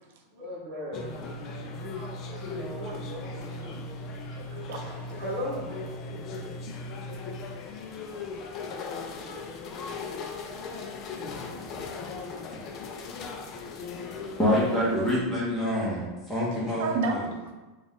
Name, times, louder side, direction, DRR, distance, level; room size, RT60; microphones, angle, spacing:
voice 1, 0.3-2.1 2.4-3.8 4.9-5.8, equal, 40° right, -6 dB, 1.1 m, -38 dB
sound 1, 0.9-15.2, left 3 dB, 35° left, 0.4 m, -38 dB
voice 2, 4.3-5.2 16.5-17.5, right 3 dB, 65° right, 3 dB, 0.7 m, -33 dB
voice 3, 14.4-17.2, left 1 dB, 5° left, -7 dB, 1.2 m, -26 dB
4.0 x 2.4 x 3.6 m, 1.2 s
supercardioid pair, 155°, 0 cm